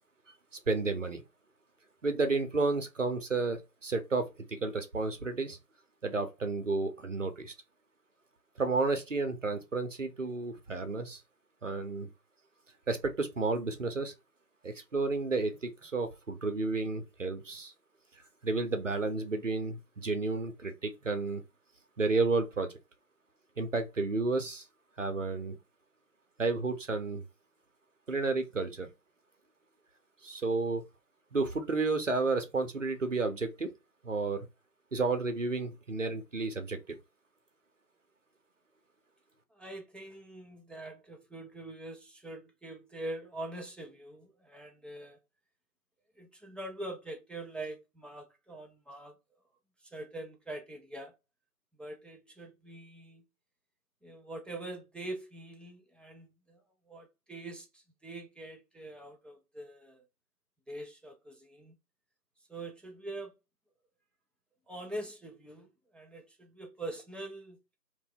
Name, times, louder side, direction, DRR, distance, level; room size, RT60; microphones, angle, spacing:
voice 1, 0.7-1.2 2.0-5.6 6.0-7.5 8.6-11.2 11.6-12.1 12.9-14.1 14.6-17.7 18.4-21.4 22.0-22.7 23.6-24.6 25.0-25.6 26.4-27.2 28.1-28.9 30.2-30.8 31.3-33.7 34.0-34.4 34.9-37.0, right 3 dB, 50° right, 0.6 m, -31 dB
voice 2, 39.5-45.2 46.2-49.2 49.8-51.2 51.8-53.2 54.0-56.6 56.9-60.0 60.7-61.8 62.5-63.3 64.7-67.6, right 1 dB, ahead, 0.4 m, -44 dB
2.6 x 2.1 x 3.7 m
figure-of-eight pair, 160°, 49 cm